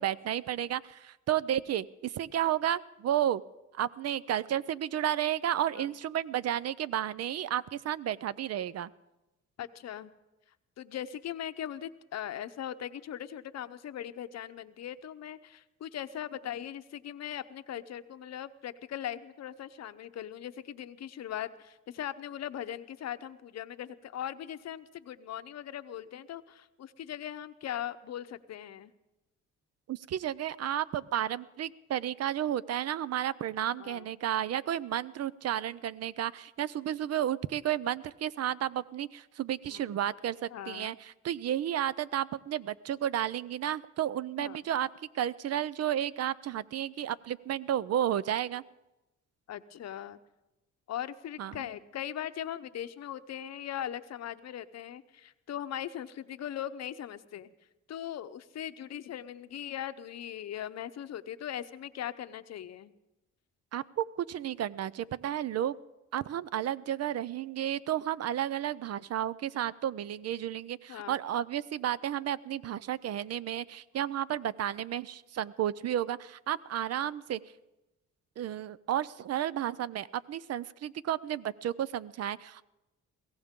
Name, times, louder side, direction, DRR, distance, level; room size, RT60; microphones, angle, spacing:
voice 1, 0.0-3.4 3.7-8.9 29.9-44.9 45.1-48.6 51.4-51.6 63.7-65.8 66.1-77.4 78.4-82.7, right 11 dB, 55° right, 18 dB, 0.5 m, -32 dB
voice 2, 9.6-10.1 10.8-28.9 33.7-34.1 39.7-39.9 40.5-40.9 44.4-44.6 49.5-50.2 50.9-57.5 57.9-62.9 70.9-71.2, left 10 dB, 60° left, 11 dB, 0.8 m, -40 dB
22.0 x 16.5 x 3.7 m, 0.99 s
cardioid pair, 90°, 30 cm